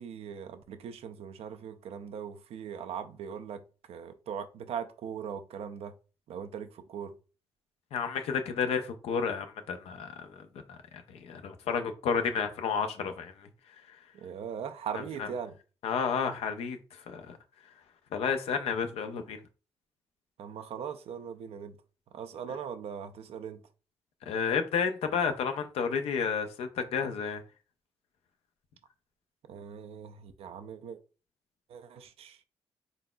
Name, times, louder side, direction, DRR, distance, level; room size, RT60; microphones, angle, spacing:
voice 1, 0.0-3.6 3.9-5.9 6.3-7.1 14.1-15.5 20.4-21.8 22.1-23.6 29.5-31.0 31.7-32.4, right 7 dB, 75° right, 0.5 m, -40 dB
voice 2, 7.9-10.3 10.9-13.5 14.9-15.3 15.8-16.8 17.1-17.4 18.1-19.4 24.3-27.4, left 6 dB, 80° left, 0.6 m, -31 dB
4.0 x 3.8 x 2.2 m
supercardioid pair, 60°, 10 cm